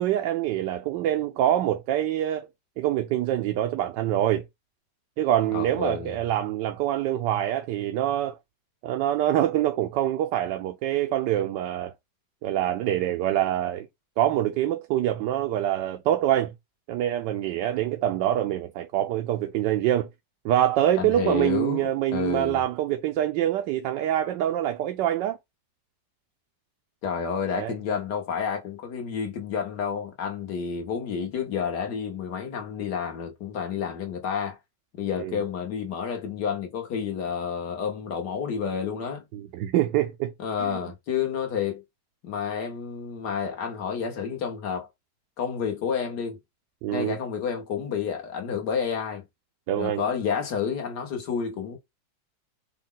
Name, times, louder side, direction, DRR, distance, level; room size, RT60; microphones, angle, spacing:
voice 1, 0.0-2.5 2.8-4.4 5.2-8.4 8.8-11.9 12.4-13.9 14.2-16.5 16.9-20.1 20.4-25.4 27.5-27.7 35.2-35.4 39.3-40.3 40.6-40.8 46.8-47.1 49.7-50.0, right 12 dB, 85° right, 1.3 m, -25 dB
voice 2, 5.5-6.2 21.0-22.6 27.0-34.6 35.0-39.2 40.4-41.8 42.2-44.9 45.4-46.4 46.9-49.3 49.8-51.8, left 7 dB, 70° left, 1.8 m, -30 dB
5.2 x 2.3 x 3.7 m
omnidirectional pair, 1.9 m